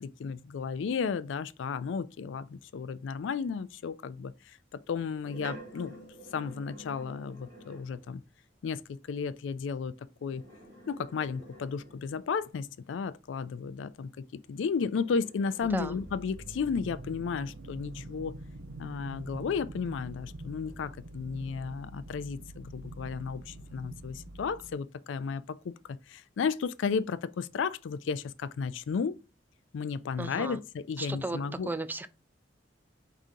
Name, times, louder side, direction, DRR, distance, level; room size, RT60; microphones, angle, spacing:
voice 1, 0.0-6.0 6.3-8.2 8.6-10.4 10.9-14.1 14.5-18.3 18.8-29.2 29.7-31.7, left 5 dB, 75° left, 0.3 m, -34 dB
sound 1, 4.8-8.1 10.1-12.4 14.4-19.6 20.1-21.9, equal, 55° right, 2.2 m, -52 dB
sound 2, 15.6-24.7, right 2 dB, 80° right, 0.6 m, -45 dB
voice 2, 30.2-30.6 31.0-32.1, right 2 dB, 10° right, 0.3 m, -35 dB
4.8 x 2.8 x 3.7 m
head